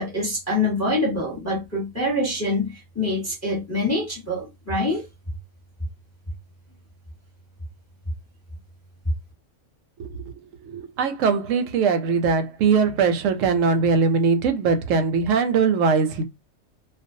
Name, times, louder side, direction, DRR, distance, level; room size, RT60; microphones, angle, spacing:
voice 1, 0.0-5.1, left 1 dB, 15° left, 0.9 m, -25 dB
voice 2, 10.7-16.2, right 5 dB, 85° right, 1.0 m, -21 dB
2.3 x 2.3 x 2.6 m
omnidirectional pair, 1.3 m